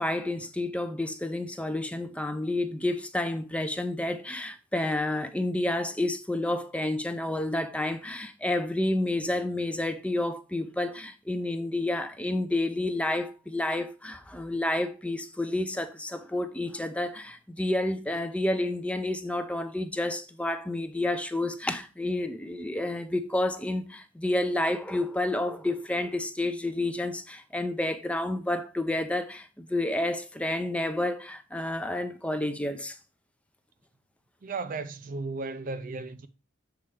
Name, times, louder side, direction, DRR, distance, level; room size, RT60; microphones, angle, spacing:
voice 1, 0.0-33.0, left 1 dB, 5° left, 0.5 m, -30 dB
voice 2, 34.4-36.3, right 3 dB, 40° right, 0.5 m, -35 dB
7.1 x 4.4 x 4.9 m
head